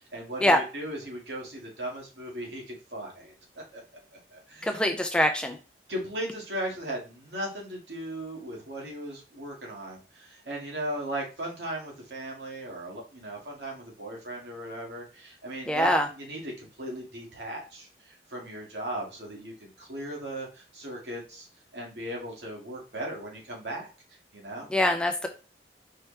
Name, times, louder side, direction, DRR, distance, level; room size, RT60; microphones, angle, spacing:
voice 1, 0.0-3.8 4.1-4.9 5.9-15.9 16.2-21.5 21.7-23.9 24.3-24.7, right 1 dB, 70° right, -2 dB, 1.8 m, -37 dB
voice 2, 4.6-5.6 15.7-16.1 24.7-25.3, left 1 dB, 5° left, 4 dB, 0.4 m, -23 dB
4.6 x 2.9 x 3.2 m, 0.33 s
head